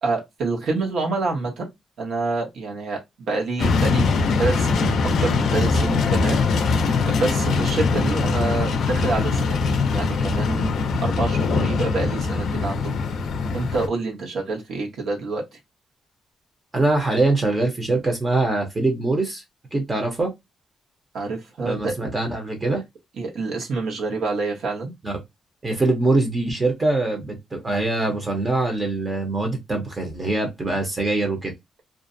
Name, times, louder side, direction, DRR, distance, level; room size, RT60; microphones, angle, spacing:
voice 1, 0.0-1.7 2.0-4.1 4.4-6.4 6.7-13.0 13.5-15.4 21.1-21.9 23.2-24.9, right 3 dB, 70° right, 1.0 m, -27 dB
sound 1, 3.6-13.9, left 4 dB, 60° left, 0.4 m, -22 dB
voice 2, 16.7-19.4 19.7-20.3 21.6-22.8 25.0-25.1 25.6-31.5, right 2 dB, 20° right, 0.7 m, -23 dB
2.4 x 2.0 x 2.5 m
cardioid pair, 145°, 0 cm